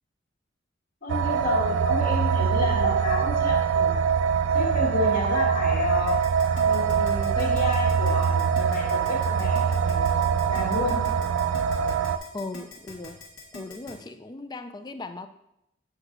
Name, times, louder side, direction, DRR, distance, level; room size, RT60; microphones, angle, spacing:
voice 1, 1.0-4.0 4.5-6.2 6.6-10.1 10.5-11.0, left 2 dB, 45° left, -3 dB, 1.5 m, -30 dB
sound 1, 1.1-12.2, right 6 dB, 65° right, 0.3 m, -23 dB
Keyboard (musical), 6.1-13.9, left 3 dB, 70° left, 1.5 m, -43 dB
voice 2, 12.3-13.2 13.5-15.3, left 3 dB, 20° left, 10 dB, 0.3 m, -38 dB
7.8 x 6.4 x 2.6 m, 0.83 s
head